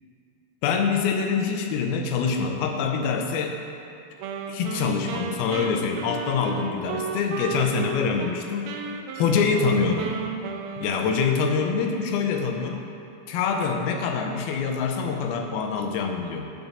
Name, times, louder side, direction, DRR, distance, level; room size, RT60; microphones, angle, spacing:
voice 1, 0.6-3.6 4.5-8.7 9.2-10.1 10.8-12.8 13.3-16.5, left 5 dB, 80° left, 4 dB, 2.5 m, -25 dB
Wind instrument woodwind instrument, 4.2-8.4 8.7-11.6, right 6 dB, 80° right, 2.4 m, -35 dB
13.5 x 5.0 x 4.0 m, 2.7 s
omnidirectional pair, 4.5 m